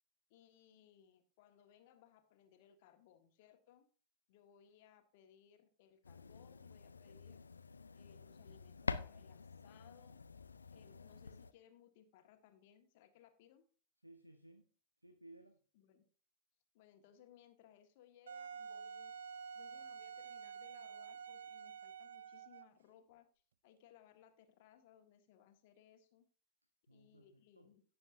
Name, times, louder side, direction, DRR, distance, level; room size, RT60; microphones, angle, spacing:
voice 1, 0.3-3.9 4.3-7.4 7.9-10.2 10.7-13.6 15.7-16.1 16.7-19.1 19.5-23.3 23.6-26.2 26.9-27.8, left 10 dB, 50° left, 6 dB, 1.6 m, -65 dB
sound 1, 6.0-11.5, left 4 dB, 75° left, 0.5 m, -47 dB
voice 2, 14.0-14.7 15.0-15.6 26.9-27.7, right 1 dB, 90° right, 8 dB, 0.8 m, -60 dB
Wind instrument woodwind instrument, 18.3-22.8, right 6 dB, 65° right, 0.4 m, -49 dB
16.5 x 6.9 x 2.7 m, 0.39 s
figure-of-eight pair, 90°, 0 cm